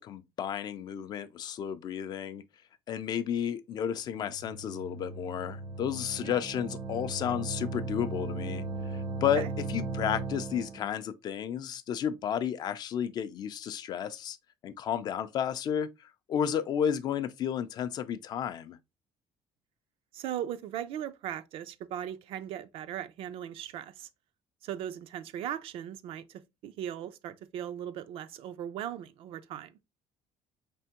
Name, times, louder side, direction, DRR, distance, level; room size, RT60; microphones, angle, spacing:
voice 1, 0.0-2.4 2.9-8.6 8.9-14.4 14.6-18.8, left 9 dB, 40° left, 0.3 m, -32 dB
sound 1, 4.0-10.9, right 3 dB, 80° right, 1.4 m, -37 dB
voice 2, 20.1-24.1 24.6-29.7, right 10 dB, 55° right, 0.4 m, -38 dB
4.3 x 3.4 x 2.8 m
cardioid pair, 180°, 11 cm